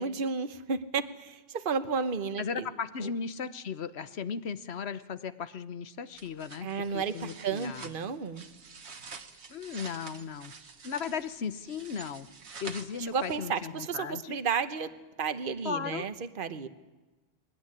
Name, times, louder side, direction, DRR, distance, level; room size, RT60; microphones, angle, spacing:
voice 1, 0.0-2.7 3.0-3.1 6.6-8.4 13.1-14.9 15.2-16.7, right 5 dB, 55° right, 10 dB, 1.2 m, -32 dB
voice 2, 2.4-7.9 9.5-10.5 10.8-12.3 12.6-14.4 15.6-16.1, left 6 dB, 75° left, 12 dB, 1.2 m, -36 dB
sound 1, 6.2-13.6, right 5 dB, 85° right, 1.6 m, -48 dB
21.5 x 18.5 x 9.8 m, 1.2 s
omnidirectional pair, 1.1 m